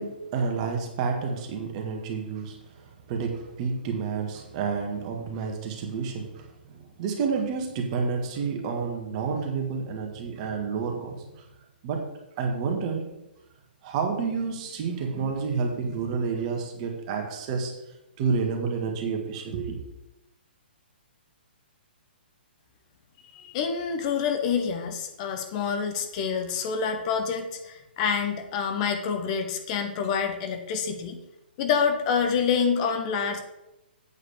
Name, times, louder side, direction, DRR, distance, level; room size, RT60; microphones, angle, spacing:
voice 1, 0.0-2.6 3.1-11.2 11.8-12.1 12.4-13.1 13.8-17.8 18.2-19.8, right 5 dB, 40° right, 3 dB, 1.8 m, -29 dB
voice 2, 23.3-31.2 31.6-33.4, left 6 dB, 40° left, 6 dB, 1.2 m, -27 dB
8.4 x 4.9 x 6.9 m, 0.92 s
hypercardioid pair, 135°, 6 cm